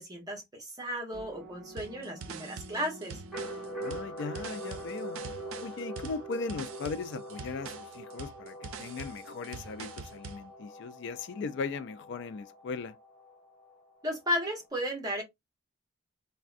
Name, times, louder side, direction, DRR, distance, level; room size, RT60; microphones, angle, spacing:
voice 1, 0.0-3.2 14.0-15.2, equal, 20° right, 0.9 m, -34 dB
sound 1, 1.1-14.7, equal, ahead, 1.1 m, -44 dB
sound 2, 1.8-10.4, right 6 dB, 90° right, 0.4 m, -44 dB
voice 2, 3.8-5.2 5.6-12.9, left 4 dB, 60° left, 0.3 m, -38 dB
3.4 x 2.1 x 2.4 m
head